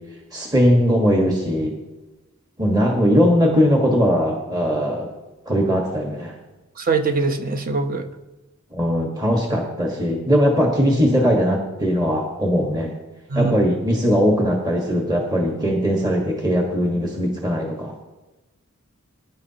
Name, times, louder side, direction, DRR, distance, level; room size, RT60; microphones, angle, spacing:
voice 1, 0.3-1.7 2.6-5.1 5.5-6.3 8.7-12.9 13.3-17.9, equal, 20° right, -1 dB, 1.4 m, -19 dB
voice 2, 6.8-8.0 13.3-13.5, right 4 dB, 45° right, 6 dB, 0.9 m, -22 dB
20.5 x 10.5 x 2.9 m, 1.1 s
head